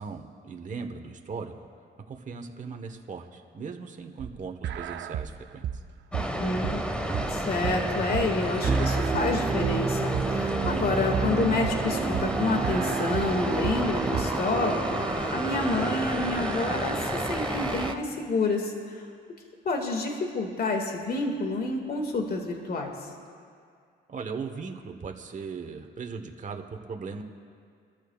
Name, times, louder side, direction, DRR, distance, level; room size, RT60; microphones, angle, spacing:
voice 1, 0.0-1.5 2.1-5.6 24.1-27.2, right 5 dB, 40° right, 4 dB, 1.3 m, -38 dB
sound 1, 4.2-14.2, right 9 dB, 65° right, 0.6 m, -34 dB
sound 2, 6.1-17.9, equal, 5° left, 1.4 m, -31 dB
voice 2, 6.4-6.8 7.3-19.1 19.6-22.9, left 3 dB, 50° left, 2 dB, 2.0 m, -29 dB
sound 3, 8.7-17.9, right 4 dB, 25° right, 0.6 m, -31 dB
27.5 x 13.5 x 2.4 m, 2.2 s
cardioid pair, 90°, 20 cm